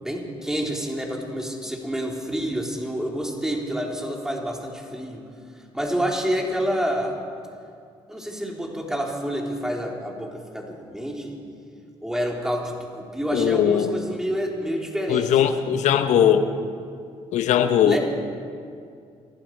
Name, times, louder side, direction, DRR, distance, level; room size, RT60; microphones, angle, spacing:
voice 1, 0.0-5.2 5.7-7.2 8.1-11.4 12.0-15.5 17.8-18.0, equal, 5° right, -1 dB, 3.6 m, -28 dB
voice 2, 13.3-13.9 15.1-16.5 17.3-18.0, left 9 dB, 75° left, 9 dB, 1.1 m, -19 dB
26.0 x 11.5 x 4.7 m, 2.3 s
supercardioid pair, 65°, 12 cm